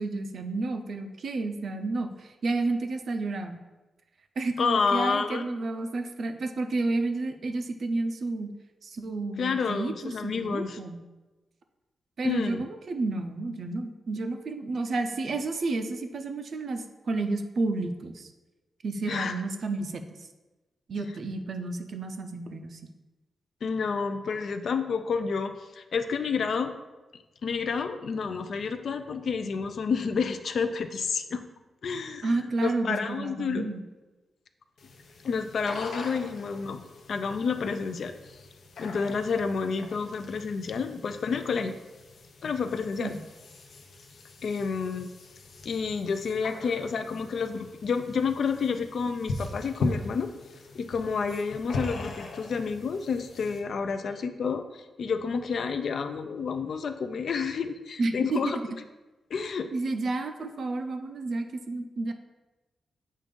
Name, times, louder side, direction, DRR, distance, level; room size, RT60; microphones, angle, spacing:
voice 1, 0.0-3.6 4.4-8.5 8.8-11.0 12.2-18.3 18.8-20.3 20.9-22.8 32.2-33.8 43.0-43.2 58.0-58.5 59.7-62.1, right 3 dB, 55° right, 7 dB, 0.5 m, -31 dB
voice 2, 4.6-5.4 9.4-10.8 12.2-12.7 19.1-19.4 23.6-26.7 27.4-31.4 31.8-32.3 32.6-33.7 35.2-36.8 37.1-38.1 38.8-41.7 42.4-43.1 44.4-45.1 45.6-50.3 50.7-58.6 59.3-59.7, left 5 dB, 60° left, 8 dB, 0.4 m, -29 dB
sound 1, 34.8-53.6, left 2 dB, 80° left, 0.8 m, -40 dB
7.4 x 2.5 x 5.2 m, 1.1 s
wide cardioid pair, 140°, 0 cm